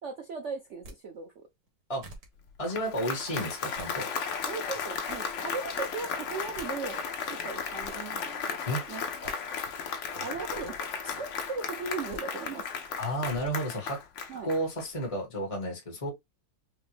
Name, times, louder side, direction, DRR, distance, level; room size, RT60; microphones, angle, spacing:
voice 1, 0.0-1.5 4.5-9.0 10.2-12.7 14.3-14.5, right 4 dB, 75° right, 0.6 m, -38 dB
sound 1, 0.7-1.0 1.7-1.8 2.0-2.3 3.5-3.9 4.6-5.2 6.3-6.4 6.5-6.7 7.5-8.0 9.0-9.4 10.3-10.7 11.9-12.2 13.1-13.5, right 1 dB, 55° right, 1.6 m, -48 dB
Applause, 2.5-15.0, left 6 dB, 70° left, 0.7 m, -35 dB
voice 2, 2.6-4.1 8.7-8.8 10.1-10.2 13.0-14.0 14.4-16.1, right 1 dB, 20° left, 1.1 m, -32 dB
5.1 x 2.1 x 3.2 m
omnidirectional pair, 2.1 m